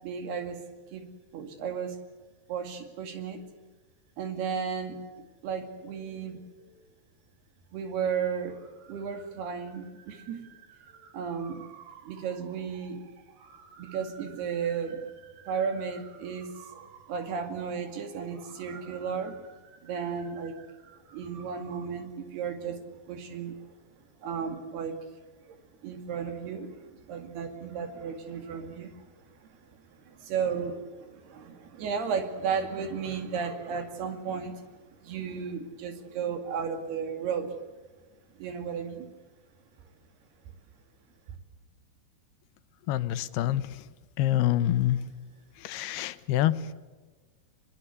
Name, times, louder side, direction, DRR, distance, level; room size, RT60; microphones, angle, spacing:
voice 1, 0.0-0.6 0.9-1.1 1.3-2.0 2.5-3.4 4.2-5.0 5.4-6.7 7.7-23.6 24.2-25.0 25.5-25.6 25.8-29.0 29.4-37.5 38.4-39.1, right 6 dB, 75° right, 7 dB, 4.3 m, -34 dB
voice 2, 42.9-43.7 44.2-45.1 45.6-46.7, left 13 dB, 80° left, 14 dB, 2.9 m, -26 dB
22.0 x 22.0 x 8.2 m, 1.3 s
omnidirectional pair, 4.7 m